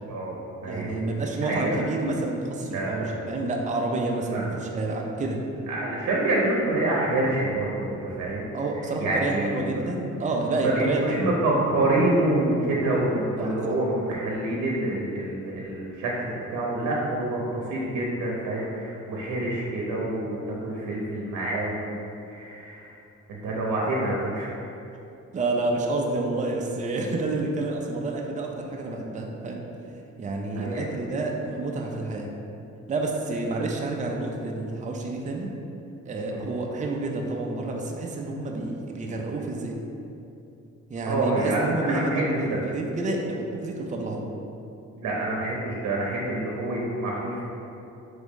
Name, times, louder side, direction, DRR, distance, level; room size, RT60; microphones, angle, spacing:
voice 1, 0.1-1.0 1.4-1.8 2.7-3.1 4.3-4.6 5.7-8.5 9.0-9.9 10.5-22.0 22.3-23.0 23.3-24.5 30.6-30.9 36.3-36.5 41.0-42.6 45.0-47.4, right 2 dB, 70° right, -3 dB, 0.8 m, -27 dB
voice 2, 0.6-5.4 8.5-11.3 13.4-13.7 25.3-29.6 30.2-32.3 32.9-35.5 36.1-39.8 40.9-44.2, right 2 dB, 25° right, 0 dB, 0.5 m, -29 dB
3.9 x 3.5 x 3.6 m, 2.8 s
cardioid pair, 90°, 30 cm